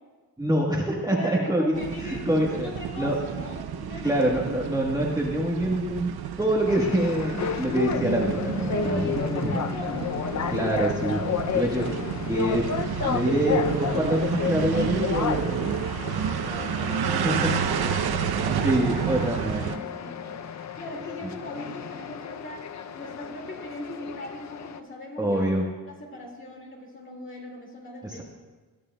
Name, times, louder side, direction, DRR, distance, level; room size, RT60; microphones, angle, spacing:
voice 1, 0.4-2.7 2.9-3.2 4.0-6.1 6.4-9.6 10.5-11.2 11.5-11.9 12.3-12.6 13.0-15.7 17.2-17.6 18.6-19.6 25.2-25.6 28.0-28.2, right 1 dB, 10° right, -4 dB, 1.2 m, -25 dB
voice 2, 1.1-4.5 6.8-7.1 7.5-7.7 8.7-10.4 11.8-12.0 15.1-20.4 20.7-22.7 22.9-25.5 25.8-28.2, left 1 dB, 35° left, 0 dB, 2.1 m, -39 dB
sound 1, 1.7-19.8, right 8 dB, 90° right, 0.6 m, -31 dB
sound 2, 6.7-24.8, left 7 dB, 50° left, 0.5 m, -32 dB
20.5 x 13.0 x 2.2 m, 1.3 s
wide cardioid pair, 160°, 37 cm